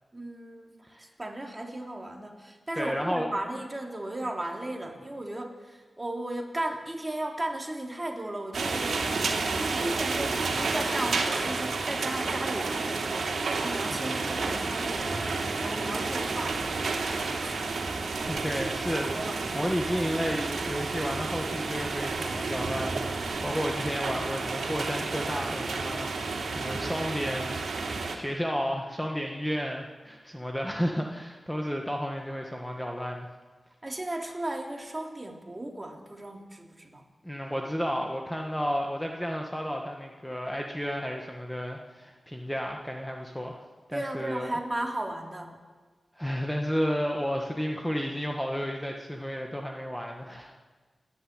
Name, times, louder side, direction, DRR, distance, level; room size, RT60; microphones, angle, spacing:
voice 1, 0.1-16.8 17.4-17.6 18.4-19.5 33.8-37.1 43.9-45.5, right 1 dB, 20° right, 2 dB, 3.3 m, -36 dB
voice 2, 2.7-3.3 13.9-14.3 18.3-27.6 28.1-33.3 37.2-43.6 43.9-44.6 46.2-50.5, equal, 5° left, 1 dB, 1.8 m, -32 dB
sound 1, 8.5-28.2, right 3 dB, 85° right, 3.1 m, -31 dB
28.5 x 11.0 x 9.4 m, 1.4 s
wide cardioid pair, 85°, 0 cm